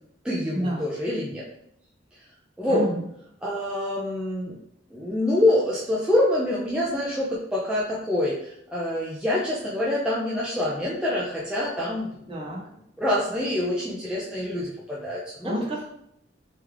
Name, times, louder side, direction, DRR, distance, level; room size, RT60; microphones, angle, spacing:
voice 1, 0.2-1.4 2.6-2.8 3.4-4.6 4.9-12.5 13.0-15.6, left 1 dB, 5° right, -7 dB, 0.5 m, -26 dB
voice 2, 2.6-3.0 12.3-12.6 15.4-15.8, equal, 30° right, -3 dB, 1.0 m, -29 dB
3.5 x 3.2 x 3.3 m, 0.75 s
head